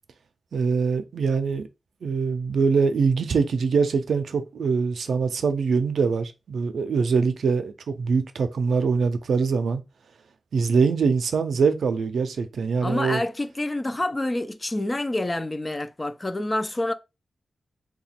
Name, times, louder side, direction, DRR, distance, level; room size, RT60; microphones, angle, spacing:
voice 1, 0.5-1.7 2.0-9.8 10.5-13.2, right 5 dB, 80° right, 0.5 m, -23 dB
voice 2, 12.8-16.9, left 1 dB, 20° left, 0.4 m, -27 dB
2.9 x 2.3 x 4.2 m
wide cardioid pair, 110°, 0 cm